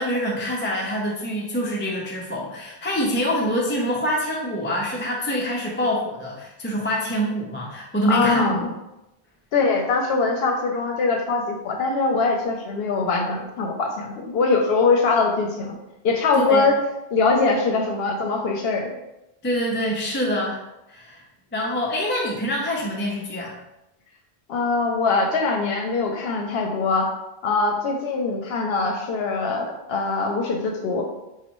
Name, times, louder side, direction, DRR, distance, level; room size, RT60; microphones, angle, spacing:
voice 1, 0.0-8.7 16.3-16.7 19.4-20.6 20.9-21.2 21.5-23.6, equal, 15° left, -3 dB, 0.4 m, -25 dB
voice 2, 8.1-8.7 9.5-15.8 16.0-16.8 17.1-18.9 24.5-27.1 27.4-31.0, left 3 dB, 75° left, 2 dB, 0.8 m, -22 dB
5.2 x 2.4 x 3.0 m, 0.92 s
omnidirectional pair, 1.0 m